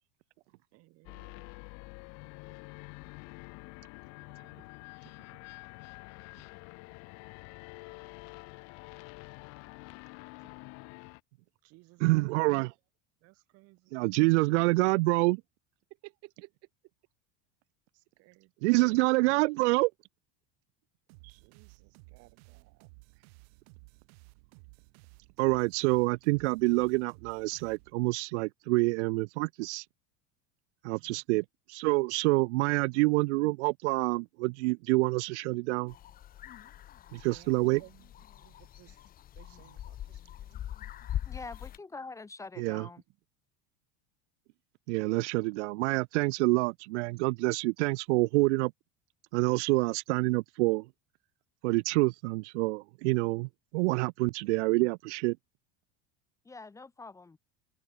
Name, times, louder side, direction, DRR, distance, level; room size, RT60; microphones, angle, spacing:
voice 1, 0.7-1.5 11.6-12.5 13.2-13.9 16.0-16.5 17.9-19.0 21.2-22.9 23.2-23.3 30.9-31.2 37.2-38.1 38.4-39.0 39.4-40.6, right 22 dB, 45° right, 6.2 m, -57 dB
sound 1, 1.0-11.2, left 28 dB, 50° left, 7.2 m, -48 dB
voice 2, 12.0-12.7 13.9-15.4 18.6-19.9 25.4-29.8 30.8-35.9 37.1-37.8 42.6-42.9 44.9-48.7 49.3-50.9 51.6-55.4, right 24 dB, 90° right, 0.7 m, -27 dB
sound 2, 21.1-28.3, right 33 dB, 60° right, 7.6 m, -56 dB
sound 3, 35.9-41.8, left 11 dB, 25° left, 2.0 m, -42 dB
voice 3, 41.3-43.0 56.4-57.4, left 3 dB, 10° left, 3.0 m, -45 dB
open air
cardioid pair, 180°, 34 cm